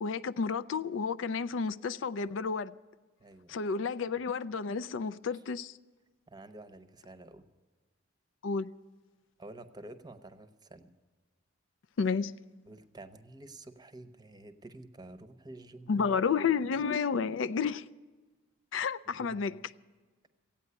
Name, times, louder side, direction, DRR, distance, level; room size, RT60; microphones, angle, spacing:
voice 1, 0.0-2.7 3.5-5.7 8.4-8.7 12.0-12.3 15.9-17.8 18.7-19.5, left 5 dB, 70° left, 0.4 m, -31 dB
voice 2, 3.2-3.6 5.3-5.4 6.3-7.5 9.4-10.9 12.7-16.1 16.8-16.9 19.2-19.6, right 2 dB, 20° right, 0.8 m, -49 dB
15.5 x 8.9 x 9.6 m
head